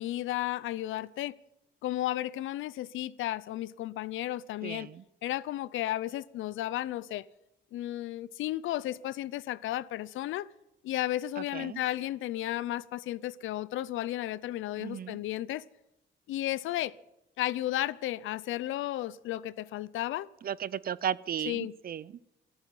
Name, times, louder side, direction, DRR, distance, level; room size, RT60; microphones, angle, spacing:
voice 1, 0.0-1.3 1.8-4.9 5.2-7.3 7.7-10.5 10.8-15.6 16.3-16.9 17.4-20.3 21.5-21.7, left 14 dB, 80° left, 0.6 m, -33 dB
voice 2, 4.6-5.0 11.4-11.8 14.8-15.2 20.4-22.1, right 9 dB, 50° right, 0.6 m, -35 dB
13.5 x 9.0 x 9.9 m
cardioid pair, 90°, 20 cm